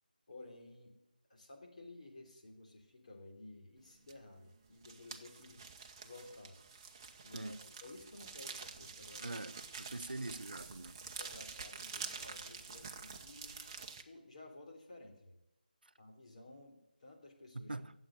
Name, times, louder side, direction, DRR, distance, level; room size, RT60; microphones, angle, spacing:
voice 1, 0.3-0.9 1.3-5.6 6.0-6.6 7.2-7.6 7.8-9.3 11.0-13.6 14.0-15.3 16.0-17.7, left 2 dB, 50° left, 3.2 m, -54 dB
sound 1, 4.1-4.4 4.6-14.0, right 5 dB, 25° right, 0.8 m, -48 dB
voice 2, 9.2-11.0 17.5-17.9, right 2 dB, 75° right, 0.8 m, -43 dB
14.0 x 8.0 x 9.1 m
figure-of-eight pair, 160°, 5 cm